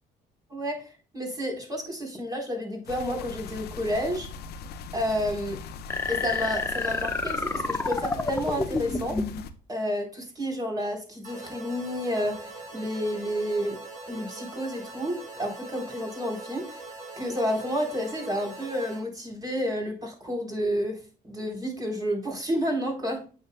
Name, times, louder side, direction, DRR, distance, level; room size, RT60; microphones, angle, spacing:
voice 1, 0.5-0.8 1.1-4.3 4.9-5.5 6.1-9.2 9.7-13.8 14.1-16.8 17.2-21.0 21.2-23.3, equal, 20° right, 0 dB, 3.9 m, -30 dB
sound 1, 2.9-9.5, left 5 dB, 70° left, 0.9 m, -40 dB
sound 2, 5.9-9.4, left 3 dB, 15° left, 0.9 m, -29 dB
sound 3, 11.2-19.0, right 3 dB, 45° right, 2.9 m, -42 dB
8.8 x 6.9 x 2.2 m, 0.37 s
cardioid pair, 110°, 17 cm